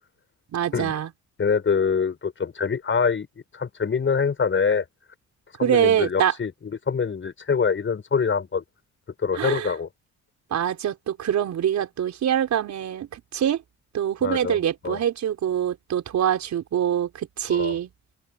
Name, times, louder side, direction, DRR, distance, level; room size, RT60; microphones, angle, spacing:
voice 1, 0.5-1.1 5.6-6.3 9.3-9.7 10.5-13.6 13.9-17.9, right 9 dB, 65° right, 4.7 m, -24 dB
voice 2, 1.4-3.3 3.5-4.8 5.6-8.6 9.2-9.9 14.2-14.6 14.8-15.0 17.5-17.8, left 6 dB, 40° left, 6.7 m, -24 dB
open air
cardioid pair, 90°, 30 cm